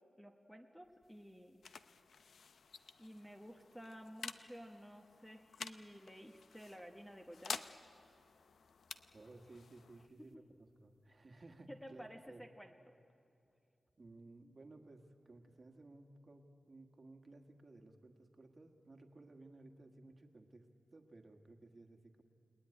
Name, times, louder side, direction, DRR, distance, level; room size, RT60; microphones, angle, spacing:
voice 1, 0.2-1.6 3.0-7.7 11.7-12.9, equal, 5° left, 3 dB, 1.0 m, -53 dB
sound 1, 0.8-12.2, left 5 dB, 85° left, 0.7 m, -52 dB
voice 2, 9.1-12.5 14.0-22.2, right 2 dB, 35° right, 4 dB, 1.7 m, -58 dB
29.5 x 19.0 x 10.0 m, 2.6 s
wide cardioid pair, 175°, 0 cm